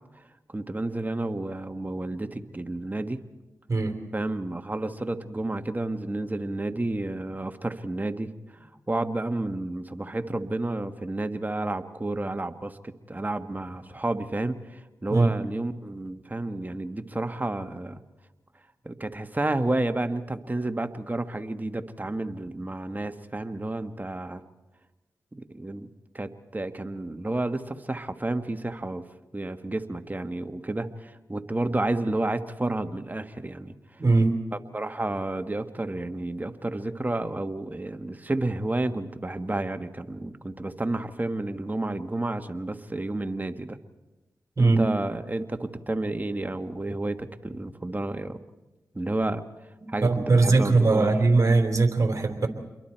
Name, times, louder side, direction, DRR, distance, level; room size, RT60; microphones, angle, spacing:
voice 1, 0.5-3.2 4.1-8.3 8.9-18.0 18.8-24.4 25.3-25.9 26.1-29.1 29.3-34.0 34.5-43.8 44.6-48.4 48.9-49.4 49.9-51.1, right 2 dB, 25° right, 8 dB, 1.5 m, -31 dB
voice 2, 3.7-4.0 15.1-15.3 34.0-34.3 44.6-44.8 49.8-52.5, right 3 dB, 45° right, 4 dB, 3.6 m, -21 dB
27.5 x 22.5 x 4.5 m, 1.1 s
cardioid pair, 40°, 7 cm